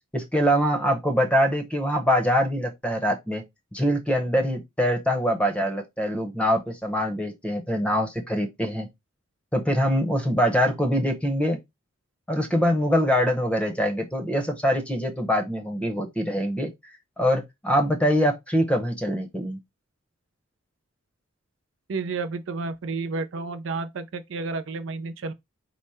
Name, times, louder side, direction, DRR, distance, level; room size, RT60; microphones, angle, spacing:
voice 1, 0.1-3.4 3.7-8.9 9.5-11.6 12.3-16.7 17.2-19.6, equal, 5° left, 0.8 m, -24 dB
voice 2, 21.9-25.3, right 3 dB, 65° right, 0.4 m, -31 dB
4.9 x 2.1 x 4.2 m
head